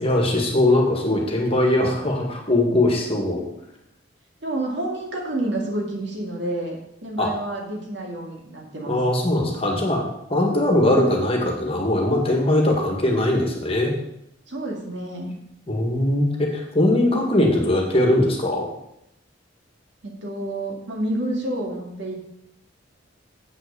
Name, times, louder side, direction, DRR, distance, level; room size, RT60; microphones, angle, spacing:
voice 1, 0.0-3.4 7.2-7.3 8.9-10.0 10.3-13.9 15.7-18.7, left 1 dB, 30° left, 1 dB, 1.7 m, -20 dB
voice 2, 4.4-6.8 7.0-9.0 14.5-15.3 20.0-22.3, right 1 dB, 60° right, -1 dB, 2.3 m, -29 dB
7.6 x 6.1 x 6.7 m, 0.80 s
head